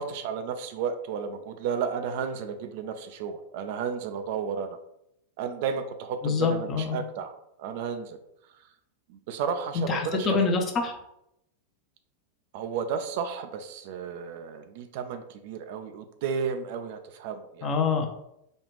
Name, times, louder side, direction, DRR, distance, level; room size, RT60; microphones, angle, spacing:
voice 1, 0.0-4.8 5.4-7.3 7.6-8.2 9.1-10.6 12.5-17.7, right 6 dB, 50° right, 8 dB, 0.4 m, -33 dB
voice 2, 6.2-7.0 9.7-11.0 17.6-18.1, left 5 dB, 30° left, 4 dB, 0.6 m, -26 dB
4.1 x 2.4 x 3.1 m, 0.79 s
figure-of-eight pair, 90°, 0 cm